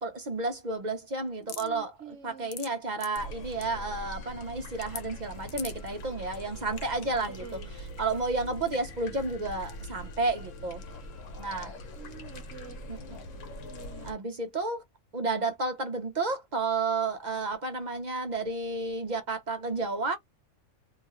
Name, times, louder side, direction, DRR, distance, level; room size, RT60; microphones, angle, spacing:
voice 1, 0.0-7.5 8.0-10.8 11.4-11.7 12.9-13.0 14.0-14.8 15.1-20.2, right 3 dB, 45° right, 0.7 m, -31 dB
voice 2, 1.4-2.5 7.3-7.8 11.9-12.8 13.6-14.2, right 8 dB, 70° right, 1.1 m, -47 dB
sound 1, 1.5-1.7 2.3-2.7 3.0-3.2 3.5-3.7 4.8-5.0 5.5-5.9, left 7 dB, 60° left, 0.4 m, -39 dB
sound 2, 3.1-14.1, left 1 dB, 80° left, 1.1 m, -42 dB
2.8 x 2.3 x 2.9 m
omnidirectional pair, 1.3 m